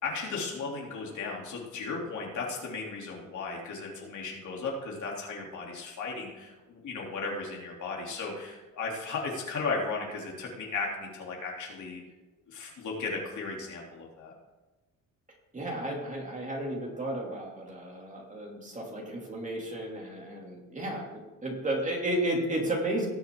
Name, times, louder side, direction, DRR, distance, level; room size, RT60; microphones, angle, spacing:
voice 1, 0.0-12.0 12.5-14.3, left 4 dB, 60° left, -2 dB, 3.5 m, -35 dB
voice 2, 15.5-23.1, right 1 dB, 20° right, -1 dB, 3.0 m, -33 dB
19.0 x 6.9 x 3.9 m, 1.1 s
cardioid pair, 115°, 33 cm